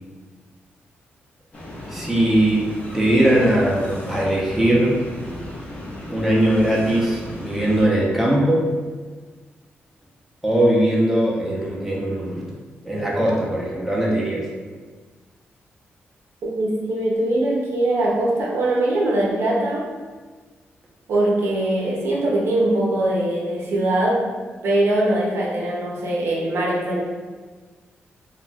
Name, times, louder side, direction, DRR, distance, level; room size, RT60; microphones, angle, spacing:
sound 1, 1.5-7.9, left 1 dB, 35° left, 0.7 m, -35 dB
voice 1, 1.9-2.7 2.9-5.0 6.1-8.7 10.4-12.4 12.8-14.4, right 1 dB, 5° right, -5 dB, 0.7 m, -20 dB
voice 2, 16.4-19.9 21.1-24.2 24.6-27.0, right 1 dB, 80° right, -4 dB, 0.7 m, -21 dB
2.3 x 2.2 x 3.9 m, 1.4 s
wide cardioid pair, 125°, 4 cm